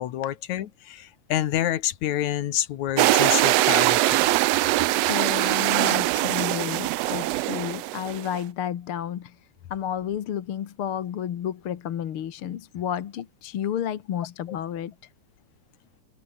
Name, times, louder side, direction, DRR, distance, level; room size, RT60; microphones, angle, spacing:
voice 1, 0.0-4.2 14.5-14.6, left 12 dB, 75° left, 2.5 m, -28 dB
sound 1, 3.0-8.4, right 17 dB, 75° right, 1.5 m, -22 dB
voice 2, 5.1-9.4 9.7-14.9, left 9 dB, 55° left, 1.8 m, -31 dB
omnidirectional pair, 3.4 m